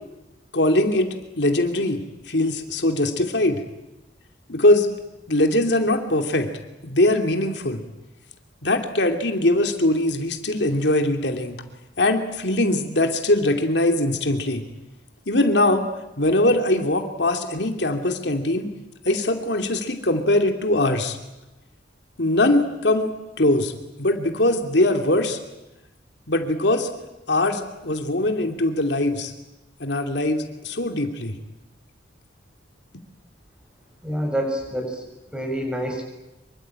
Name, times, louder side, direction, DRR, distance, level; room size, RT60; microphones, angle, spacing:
voice 1, 0.5-2.0 2.3-3.6 4.5-4.9 5.3-6.5 6.8-7.8 8.6-11.6 12.0-14.6 15.3-15.8 16.2-18.7 19.0-21.2 22.2-23.1 23.4-23.7 24.0-25.4 26.3-26.9 27.3-29.3 29.8-31.3, left 1 dB, 70° left, 5 dB, 2.8 m, -21 dB
voice 2, 34.0-35.1 35.3-36.0, equal, 5° right, 3 dB, 6.3 m, -27 dB
26.5 x 24.5 x 8.9 m, 0.97 s
head